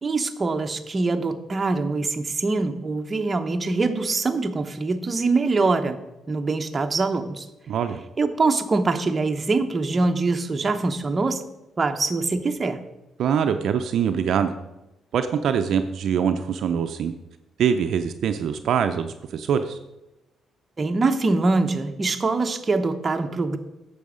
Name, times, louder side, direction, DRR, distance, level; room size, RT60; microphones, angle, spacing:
voice 1, 0.0-6.0 6.3-7.5 8.2-11.4 11.8-12.8 20.8-23.6, right 3 dB, 30° right, 6 dB, 0.9 m, -23 dB
voice 2, 7.7-8.0 13.2-14.5 15.1-17.1 17.6-19.8, right 7 dB, 70° right, 8 dB, 0.5 m, -23 dB
9.3 x 6.9 x 5.0 m, 0.95 s
cardioid pair, 90°, 0 cm